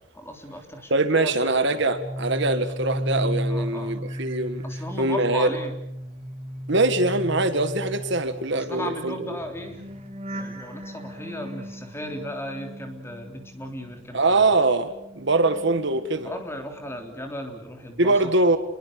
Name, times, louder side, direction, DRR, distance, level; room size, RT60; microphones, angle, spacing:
voice 1, 0.1-1.8 3.5-3.9 4.6-5.7 8.5-9.8 10.3-14.5 16.2-18.3, equal, 10° left, 3.4 m, -36 dB
voice 2, 0.9-4.6 5.0-5.5 6.7-9.3 14.1-16.3 18.0-18.6, right 2 dB, 55° right, 1.7 m, -23 dB
sound 1, 1.7-14.0 14.3-16.4 16.7-17.1, equal, 30° right, 3.4 m, -35 dB
29.0 x 22.5 x 6.9 m
head